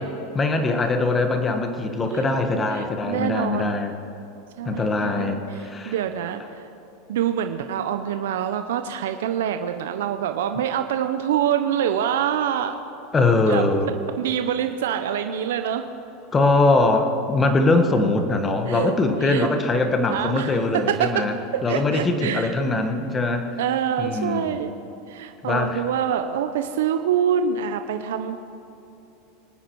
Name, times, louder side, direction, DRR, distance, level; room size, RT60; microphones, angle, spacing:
voice 1, 0.3-3.9 4.6-5.9 13.1-13.9 16.3-21.3 21.6-23.5 24.0-24.6 25.4-25.8, left 2 dB, 20° left, 5 dB, 1.6 m, -22 dB
voice 2, 2.7-3.8 4.6-6.7 7.1-12.8 13.5-13.6 14.2-15.9 18.7-18.9 19.2-19.5 20.1-21.2 21.7-22.5 23.6-24.7 25.1-28.4, right 9 dB, 80° right, 7 dB, 0.8 m, -25 dB
25.5 x 9.5 x 4.7 m, 2.9 s
supercardioid pair, 125°, 0 cm